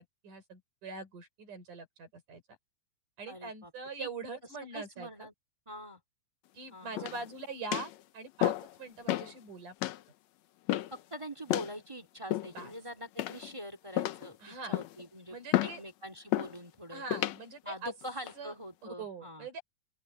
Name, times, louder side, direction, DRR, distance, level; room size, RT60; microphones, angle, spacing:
voice 1, 0.0-2.4 3.2-5.3 6.5-9.7 12.5-12.7 14.4-14.8 15.3-15.8 16.9-17.9 18.3-18.5 18.8-19.6, right 4 dB, 75° right, 7.6 m, -43 dB
voice 2, 3.3-3.7 4.0-4.1 4.7-5.3 5.7-6.0 6.7-7.3 10.9-15.4 15.6-17.0 17.6-19.5, equal, 10° right, 1.8 m, -44 dB
sound 1, 7.0-7.3 7.7-8.0 8.4-8.7 9.1-9.3 9.8-10.0 10.7-11.0 11.5-11.7 12.3-12.7 13.2-13.6 14.0-14.3 14.7-15.0 15.5-15.8 16.3-16.6 17.1-17.4 18.0-18.3, left 15 dB, 70° left, 1.8 m, -31 dB
open air
omnidirectional pair, 3.7 m